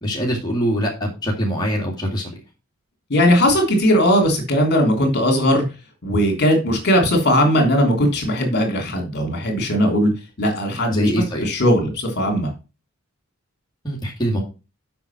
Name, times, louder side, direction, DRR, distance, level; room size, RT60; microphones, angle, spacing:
voice 1, 0.0-2.3 10.9-11.5 13.8-14.4, equal, 20° left, -2 dB, 2.4 m, -23 dB
voice 2, 3.1-5.6 6.0-10.1 10.4-11.1 11.4-12.5, equal, 50° left, 3 dB, 3.3 m, -18 dB
7.8 x 5.9 x 6.0 m, 0.30 s
head